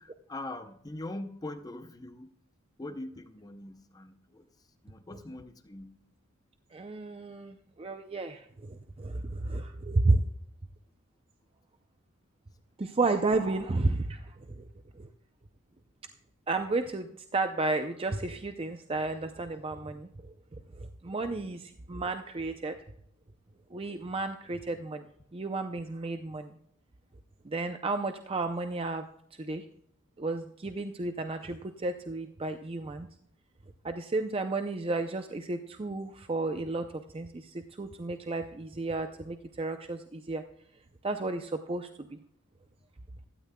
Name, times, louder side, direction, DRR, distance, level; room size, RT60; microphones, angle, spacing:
voice 1, 0.0-2.3 2.8-5.9, left 2 dB, 15° left, 9 dB, 0.6 m, -42 dB
voice 2, 6.7-10.2 12.8-14.6 15.0-15.1 16.5-20.1 20.8-22.8 23.7-25.0 25.3-26.6 27.4-29.0 29.3-29.6 30.2-33.1 33.8-40.4 41.0-42.2, right 3 dB, 25° right, 7 dB, 0.5 m, -32 dB
16.5 x 13.0 x 2.2 m, 0.73 s
head